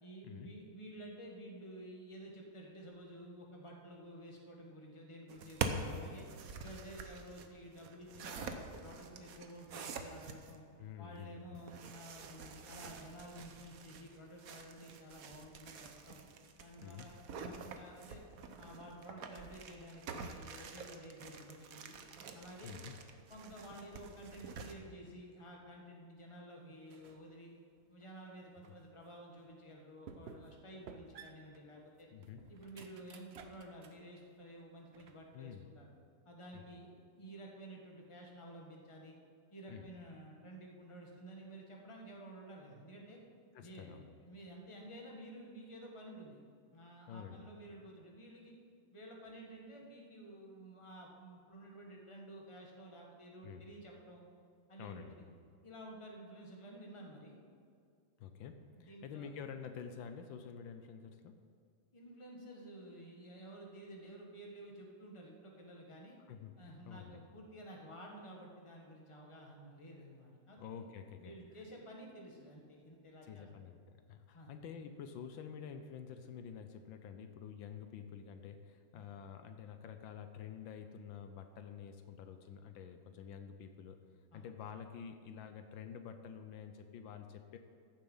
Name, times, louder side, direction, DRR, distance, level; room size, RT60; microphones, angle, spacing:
voice 1, 0.0-6.3 6.6-10.6 11.0-16.2 16.6-18.2 18.6-22.0 22.3-22.7 23.3-27.5 27.9-32.1 32.5-35.9 36.2-36.9 37.2-39.2 39.5-43.2 43.6-44.0 44.2-46.4 46.7-48.5 48.9-54.2 54.7-55.3 55.6-57.4 58.7-59.3 61.9-66.2 66.6-70.8 71.1-73.5 74.3-74.5 78.9-79.0 84.3-84.4, right 1 dB, 15° left, 0 dB, 1.5 m, -52 dB
sound 1, 5.3-10.6 11.5-24.7, right 4 dB, 55° right, 1.1 m, -46 dB
voice 2, 10.8-11.8 16.8-17.1 22.6-22.9 32.1-32.4 35.3-35.7 36.5-36.6 39.7-39.9 43.5-44.2 47.1-47.5 53.4-53.7 54.8-55.3 58.2-61.3 66.3-66.5 66.8-67.2 70.6-71.6 73.2-73.8 74.1-84.0 84.3-87.6, left 7 dB, 80° left, 7 dB, 1.5 m, -49 dB
sound 2, 26.9-27.3 27.8-28.8 29.4-29.5 30.1-30.6 30.9-34.1 34.5-35.4, right 5 dB, 75° right, 0.5 m, -55 dB
14.5 x 7.3 x 5.5 m, 2.3 s
omnidirectional pair, 2.1 m